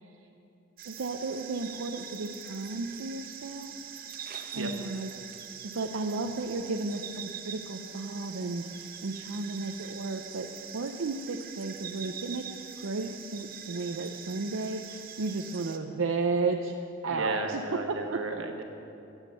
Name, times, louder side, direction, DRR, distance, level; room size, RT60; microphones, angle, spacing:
sound 1, 0.8-15.8, right 8 dB, 50° right, 0.8 m, -43 dB
voice 1, 0.8-3.8 4.3-5.1 5.7-10.5 10.7-16.7 17.0-17.6 18.1-18.4, right 3 dB, 90° right, 3 dB, 0.6 m, -33 dB
voice 2, 17.1-18.6, right 2 dB, 75° right, 4 dB, 1.3 m, -34 dB
16.5 x 7.3 x 6.7 m, 2.8 s
head